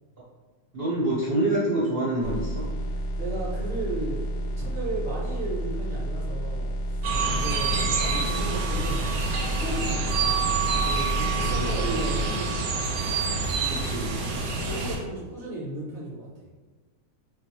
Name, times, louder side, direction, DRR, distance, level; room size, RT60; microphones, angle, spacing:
voice 1, 0.7-2.6 11.4-12.0 12.2-12.3 13.7-14.4, right 1 dB, 60° right, -10 dB, 0.5 m, -27 dB
sound 1, 2.2-12.3, equal, 85° left, 0.8 m, -31 dB
voice 2, 2.8-4.2 4.6-9.2 9.5-10.4 10.8-13.0 14.2-16.3, right 2 dB, 40° left, -11 dB, 0.5 m, -35 dB
sound 2, 7.0-15.0, right 4 dB, 85° right, 1.5 m, -27 dB
3.8 x 2.4 x 2.9 m, 1.4 s
omnidirectional pair, 2.3 m